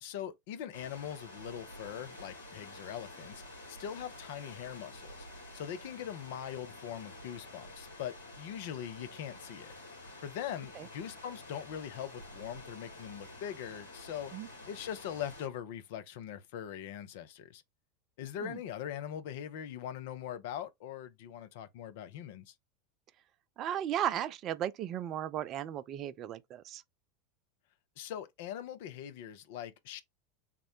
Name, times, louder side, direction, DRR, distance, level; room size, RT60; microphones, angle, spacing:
voice 1, 0.0-3.4 3.7-5.3 5.5-9.7 10.2-14.3 14.6-17.6 18.2-22.5 28.0-30.0, left 10 dB, 60° left, 0.4 m, -41 dB
sound 1, 0.7-15.5, left 1 dB, 85° left, 2.3 m, -49 dB
voice 2, 23.6-26.8, right 10 dB, 40° right, 0.4 m, -35 dB
3.6 x 2.1 x 4.2 m
figure-of-eight pair, 80°, 0 cm